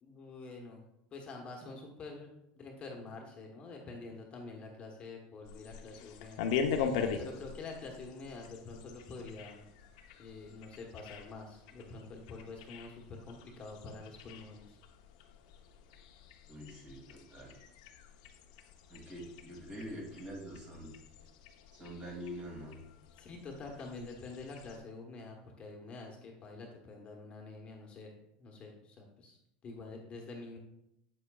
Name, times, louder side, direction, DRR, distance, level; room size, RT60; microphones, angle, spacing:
voice 1, 0.0-0.8 1.1-6.5 7.2-9.7 10.2-14.8 23.2-28.1 28.4-29.4 29.6-30.6, left 3 dB, 30° left, 1 dB, 1.1 m, -47 dB
sound 1, 5.4-24.8, left 6 dB, 75° left, 0.8 m, -42 dB
voice 2, 16.5-17.6 18.9-21.0 21.8-22.8, equal, 30° right, -1 dB, 2.2 m, -45 dB
7.9 x 7.4 x 2.3 m, 0.82 s
supercardioid pair, 130°, 4 cm